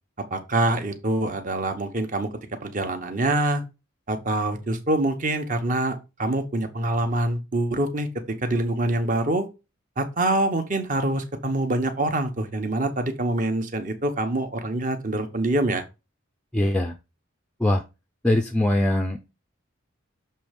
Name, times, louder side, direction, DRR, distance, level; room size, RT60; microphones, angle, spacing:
voice 1, 0.3-2.3 2.6-3.6 4.1-8.1 8.4-9.5 10.0-15.8, right 1 dB, 40° right, 1.1 m, -25 dB
voice 2, 16.5-17.0 17.6-17.8 18.2-19.3, left 1 dB, 5° left, 0.5 m, -22 dB
6.8 x 3.2 x 5.2 m
head